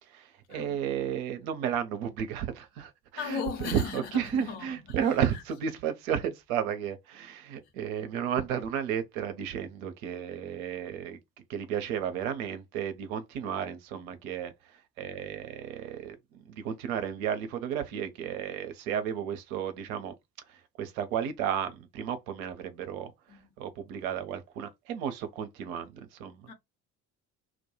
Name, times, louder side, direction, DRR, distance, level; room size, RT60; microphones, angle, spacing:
voice 1, 0.0-11.2 11.5-20.1 20.5-23.1 23.6-26.5, right 8 dB, 65° right, 0.6 m, -33 dB
voice 2, 3.1-5.0 5.3-5.4 23.3-23.7 26.5-26.6, left 6 dB, 60° left, 0.8 m, -37 dB
2.2 x 2.1 x 2.8 m
figure-of-eight pair, 45°, 46 cm